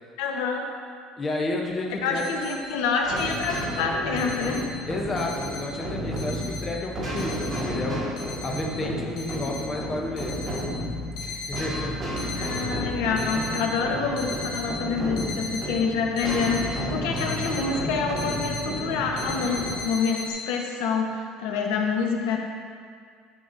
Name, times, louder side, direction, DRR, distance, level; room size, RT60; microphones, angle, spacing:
voice 1, 0.2-0.6 2.0-4.7 12.3-22.4, left 5 dB, 80° left, 2 dB, 0.9 m, -27 dB
voice 2, 1.2-2.2 4.9-8.0 8.4-10.5 11.2-12.0, left 2 dB, 15° left, 0 dB, 0.6 m, -31 dB
sound 1, 1.6-1.7 1.9-2.6 2.9-4.8 5.2-5.9 6.2-7.8 8.2-8.7 9.2-9.7 10.1-11.7 12.1-12.7 13.0-13.7 14.0-14.6 15.2-17.6 17.9-18.7 19.2-20.3, left 3 dB, 60° left, 1.5 m, -37 dB
sound 2, 3.0-19.7, equal, 20° right, 1.6 m, -32 dB
10.0 x 6.9 x 2.6 m, 2.1 s
cardioid pair, 180°, 0 cm